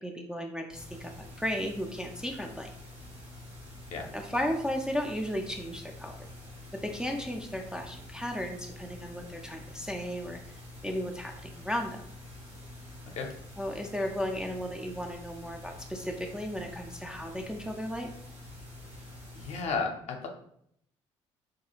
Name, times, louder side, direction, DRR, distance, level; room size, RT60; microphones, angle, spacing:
voice 1, 0.0-2.7 4.1-6.2 6.8-10.4 10.8-12.0 13.6-18.1, equal, 5° right, 1 dB, 0.3 m, -35 dB
sound 1, 0.7-19.6, left 1 dB, 75° right, 1.0 m, -47 dB
voice 2, 19.4-20.3, left 4 dB, 45° left, 3 dB, 0.6 m, -33 dB
2.4 x 2.3 x 2.9 m, 0.69 s
figure-of-eight pair, 50°, 15 cm